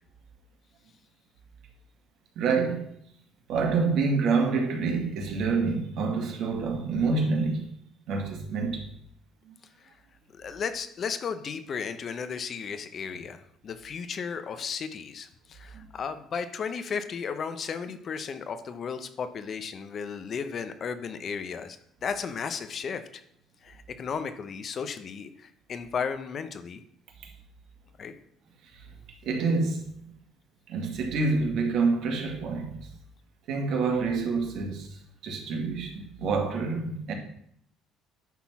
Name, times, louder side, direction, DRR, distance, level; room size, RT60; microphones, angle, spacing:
voice 1, 2.4-2.9 3.5-7.7 8.1-8.9 9.5-9.6 15.7-15.9 28.7-28.9 29.2-29.9 30.7-32.8 33.5-37.1, right 4 dB, 65° right, 2.0 m, -27 dB
voice 2, 10.3-23.2 23.6-26.8 28.0-28.1, left 6 dB, 40° left, 0.8 m, -34 dB
10.5 x 3.8 x 6.0 m
cardioid pair, 115°, 0 cm